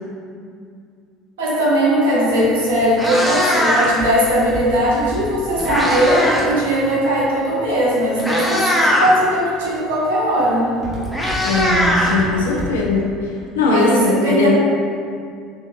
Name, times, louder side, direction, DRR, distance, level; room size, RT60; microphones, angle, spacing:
voice 1, 1.4-10.8 13.7-14.5, equal, 70° right, -5 dB, 0.7 m, -19 dB
Meow, 2.3-2.5 2.8-4.1 5.2-6.5 6.8-7.1 7.8-7.9 8.2-9.1 10.4-10.5 10.8-12.7, equal, 10° left, 0.6 m, -20 dB
Walk footsteps, 3.8-7.8 8.4-8.9 9.4-9.8 10.1-13.0 13.3-13.4, left 1 dB, 40° left, 0.9 m, -32 dB
voice 2, 11.4-13.1 13.5-14.5, left 3 dB, 70° left, -3 dB, 0.5 m, -18 dB
3.7 x 2.5 x 2.5 m, 2.2 s
figure-of-eight pair, 60°, 0 cm